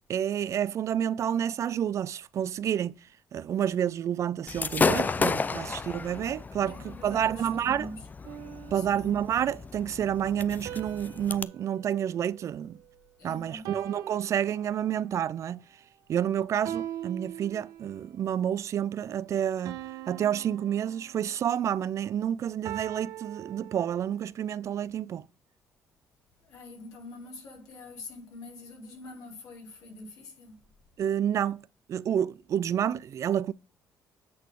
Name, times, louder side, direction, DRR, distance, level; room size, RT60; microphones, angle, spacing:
voice 1, 0.1-3.0 3.3-7.9 8.7-12.8 13.2-15.6 16.1-19.8 20.1-25.3 31.0-33.5, right 9 dB, 55° right, 0.4 m, -29 dB
Gunshot gunfire / Fireworks, 4.5-11.4, left 4 dB, 30° left, 0.4 m, -32 dB
voice 2, 6.6-8.0 8.7-9.2 13.2-13.7 26.4-30.6, left 2 dB, 70° left, 4.0 m, -45 dB
sound 1, 8.2-9.5 10.6-13.1 13.6-15.1 16.6-18.1 19.6-21.5 22.6-24.3, right 12 dB, 80° right, 0.8 m, -42 dB
8.5 x 4.1 x 4.7 m
supercardioid pair, 75°, 6 cm